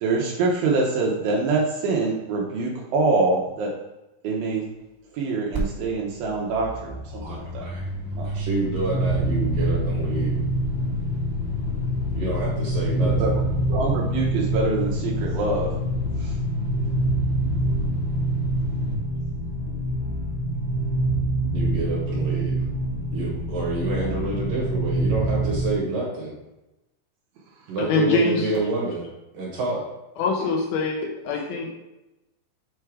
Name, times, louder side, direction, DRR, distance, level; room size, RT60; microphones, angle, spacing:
voice 1, 0.0-3.7 4.2-4.7 5.1-7.7 8.2-8.3 13.0-13.3 13.7-15.7 16.2-16.4, right 3 dB, 85° right, -2 dB, 2.1 m, -25 dB
sound 1, 5.5-5.7 5.9-19.0, left 3 dB, 30° right, 0.9 m, -31 dB
voice 2, 7.1-7.8 8.2-10.4 12.1-13.3 21.5-22.6 23.1-26.3 27.7-29.1 29.3-29.8, right 3 dB, 60° right, -4 dB, 2.4 m, -28 dB
sound 2, 8.7-25.7, right 2 dB, 60° left, 2.1 m, -26 dB
voice 3, 27.8-28.5 30.2-31.0 31.2-31.7, left 4 dB, 80° left, 0 dB, 2.2 m, -23 dB
8.4 x 3.5 x 4.7 m, 0.96 s
omnidirectional pair, 5.5 m